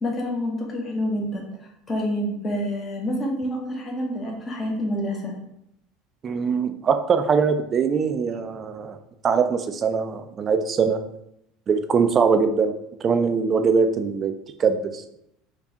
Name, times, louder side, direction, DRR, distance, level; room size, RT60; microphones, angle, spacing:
voice 1, 0.0-5.4, equal, 25° left, 0 dB, 0.9 m, -28 dB
voice 2, 6.2-9.0 9.2-11.0 11.7-14.3 14.6-15.0, right 5 dB, 35° right, 8 dB, 0.4 m, -22 dB
4.4 x 2.3 x 2.8 m, 0.79 s
supercardioid pair, 100°, 0 cm